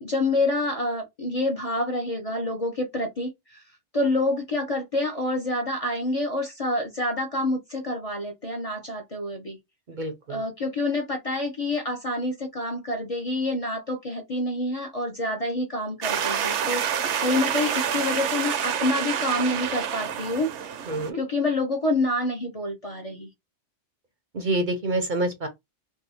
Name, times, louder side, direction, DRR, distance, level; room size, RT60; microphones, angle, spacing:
voice 1, 0.0-3.6 3.9-9.6 10.3-20.6 21.1-23.3, left 2 dB, 40° left, 0.6 m, -27 dB
voice 2, 9.9-10.4 20.9-21.2 24.3-25.5, right 2 dB, 50° right, 0.6 m, -27 dB
sound 1, 16.0-21.1, right 8 dB, 75° right, 0.9 m, -28 dB
2.7 x 2.3 x 4.0 m
omnidirectional pair, 1.2 m